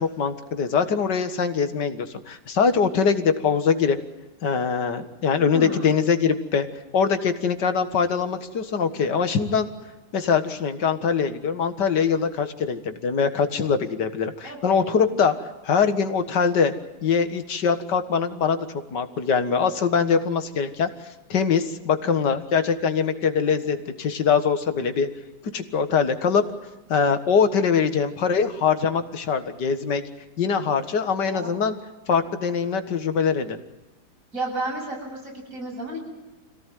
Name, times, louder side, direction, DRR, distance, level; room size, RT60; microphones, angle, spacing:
voice 1, 0.0-4.0 4.4-6.7 6.9-9.7 10.1-15.3 15.6-16.7 17.0-20.9 21.3-25.1 25.5-26.4 26.9-30.0 30.4-31.8 32.1-33.6, left 6 dB, 90° left, 9 dB, 2.2 m, -23 dB
voice 2, 5.5-5.9 14.4-14.8 31.1-31.5 34.3-36.0, right 2 dB, 50° right, 0 dB, 8.1 m, -32 dB
26.5 x 17.0 x 9.3 m, 1.1 s
omnidirectional pair, 1.8 m